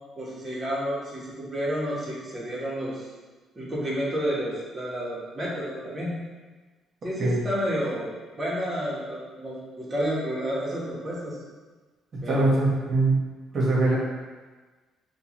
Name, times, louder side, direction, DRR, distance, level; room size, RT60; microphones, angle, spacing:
voice 1, 0.2-3.1 3.5-6.1 7.0-11.4 12.2-12.5, equal, 25° right, -6 dB, 1.4 m, -30 dB
voice 2, 12.1-13.2 13.5-14.0, right 2 dB, 40° right, -4 dB, 1.4 m, -22 dB
6.0 x 2.7 x 3.1 m, 1.3 s
cardioid pair, 120°, 0 cm